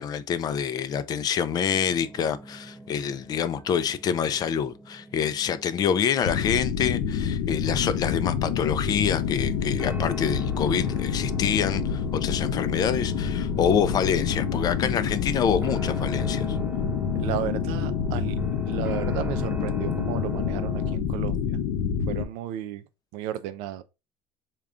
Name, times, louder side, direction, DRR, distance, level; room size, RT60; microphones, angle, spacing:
voice 1, 0.0-16.6, left 8 dB, 40° left, 0.4 m, -26 dB
sound 1, 1.7-21.0, right 2 dB, 10° right, 0.6 m, -42 dB
sound 2, 6.2-22.3, left 7 dB, 85° left, 0.6 m, -27 dB
voice 2, 17.1-21.6 22.1-22.8 23.1-23.8, right 11 dB, 80° right, 0.4 m, -34 dB
3.5 x 2.3 x 3.6 m
cardioid pair, 125°, 11 cm